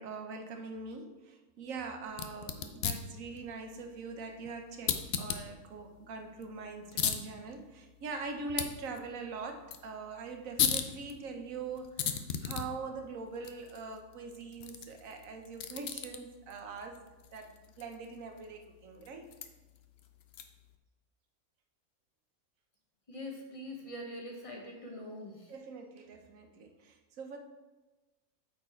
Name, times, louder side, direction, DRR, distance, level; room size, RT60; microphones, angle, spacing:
voice 1, 0.0-17.0 17.3-19.3 25.5-27.4, right 4 dB, 60° right, 5 dB, 1.3 m, -43 dB
sound 1, 2.1-20.7, left 7 dB, 60° left, 0.6 m, -39 dB
voice 2, 23.1-25.5, left 1 dB, 25° left, 0 dB, 1.2 m, -43 dB
8.7 x 4.4 x 4.4 m, 1.1 s
omnidirectional pair, 1.6 m